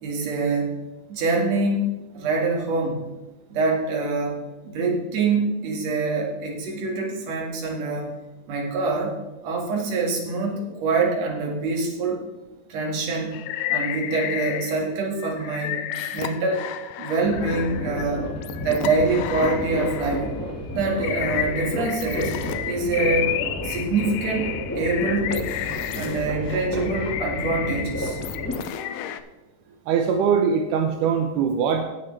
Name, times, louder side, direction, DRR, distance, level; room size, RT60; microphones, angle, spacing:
voice 1, 0.0-0.8 1.1-1.9 2.1-3.0 3.5-4.4 4.6-8.1 8.5-9.1 9.4-12.2 12.7-13.4 13.7-15.8 16.1-16.6 17.0-18.2 18.6-20.3 20.7-22.3 22.7-23.4 23.6-25.5 25.9-28.2, right 3 dB, 60° right, 0 dB, 2.9 m, -25 dB
sound 1, 13.3-14.9 15.2-20.3 20.8-29.2, left 11 dB, 90° left, 2.2 m, -31 dB
sound 2, 17.2-28.6, left 1 dB, 15° left, 0.5 m, -32 dB
voice 2, 29.9-31.8, right 7 dB, 85° right, 4 dB, 2.3 m, -22 dB
17.0 x 6.9 x 3.3 m, 1.0 s
omnidirectional pair, 3.6 m